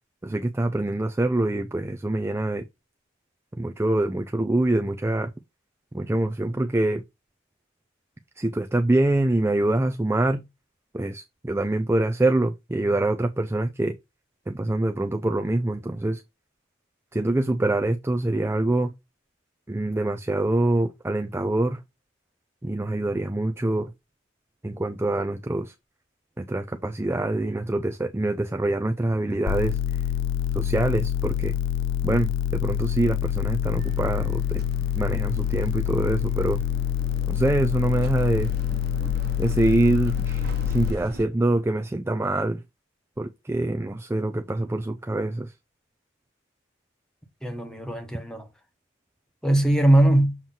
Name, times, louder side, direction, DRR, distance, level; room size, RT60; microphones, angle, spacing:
voice 1, 0.2-2.6 3.6-5.3 5.9-7.0 8.4-10.4 10.9-13.9 14.5-16.2 17.1-18.9 19.7-21.8 22.6-23.9 24.6-25.7 26.4-30.0 30.5-31.5 32.0-34.6 35.0-36.6 37.3-38.5 39.4-42.6 43.2-45.5, right 2 dB, 10° right, 0.4 m, -25 dB
sound 1, 29.5-40.9, left 9 dB, 60° left, 0.4 m, -26 dB
sound 2, 33.8-41.3, right 1 dB, 50° right, 1.2 m, -40 dB
voice 2, 47.4-48.5 49.4-50.4, right 1 dB, 5° left, 1.2 m, -20 dB
7.2 x 3.0 x 5.6 m
head